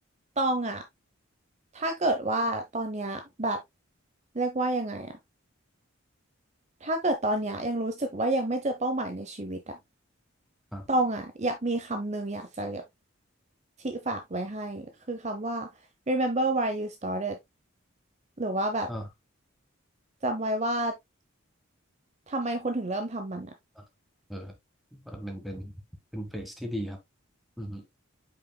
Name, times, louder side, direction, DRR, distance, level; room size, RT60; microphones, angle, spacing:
voice 1, 0.4-0.8 1.7-3.6 4.3-5.1 6.8-9.8 10.9-12.8 13.8-15.7 16.1-17.4 18.4-18.9 20.2-20.9 22.3-23.5, right 2 dB, 30° right, 0.8 m, -29 dB
voice 2, 25.1-25.7 26.1-27.0 27.6-27.8, equal, ahead, 1.5 m, -36 dB
8.4 x 5.0 x 2.2 m
head